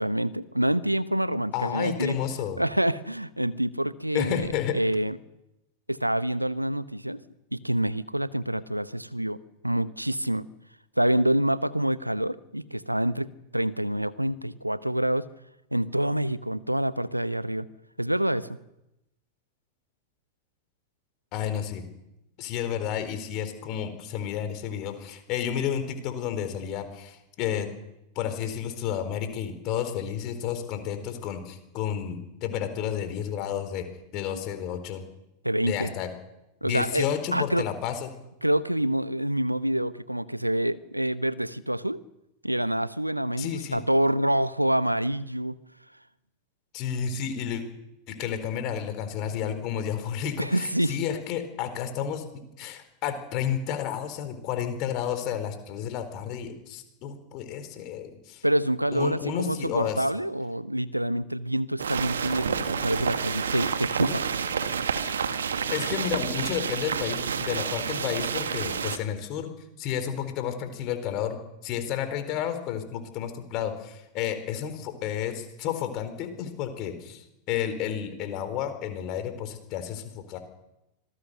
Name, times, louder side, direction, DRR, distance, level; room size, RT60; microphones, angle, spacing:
voice 1, 0.0-2.2 2.6-5.2 5.9-7.2 7.5-10.5 11.0-15.3 15.7-17.7 18.0-18.5 34.3-34.4 35.4-35.9 36.6-37.1 37.3-37.6 38.4-42.0 42.4-45.6 50.4-51.0 58.4-64.2, right 1 dB, 90° right, 17 dB, 0.9 m, -27 dB
voice 2, 1.5-2.6 4.1-4.8 21.3-21.8 22.4-27.7 28.2-33.9 34.1-35.0 35.6-36.1 36.6-38.1 43.4-43.8 46.7-47.6 48.1-52.2 52.6-58.4 58.9-60.1 65.7-69.5 69.8-80.4, left 9 dB, 40° left, 9 dB, 4.1 m, -31 dB
sound 1, 61.8-69.0, right 6 dB, 70° right, 1.7 m, -29 dB
26.0 x 19.5 x 6.7 m, 0.89 s
figure-of-eight pair, 90°, 0 cm